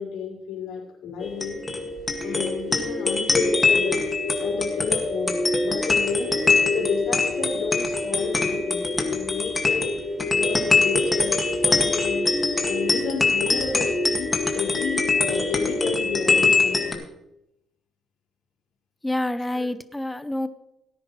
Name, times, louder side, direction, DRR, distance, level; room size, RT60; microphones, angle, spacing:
voice 1, 0.0-1.6 2.2-4.1 4.4-6.4 6.7-9.9 10.3-12.3 12.6-17.0 19.5-19.7, left 6 dB, 90° left, -5 dB, 4.2 m, -31 dB
sound 1, 1.2-16.9, left 3 dB, 25° left, 1.9 m, -23 dB
voice 2, 19.0-20.5, left 1 dB, 10° left, 11 dB, 0.8 m, -27 dB
17.5 x 10.0 x 3.2 m, 0.85 s
cardioid pair, 90°, 0 cm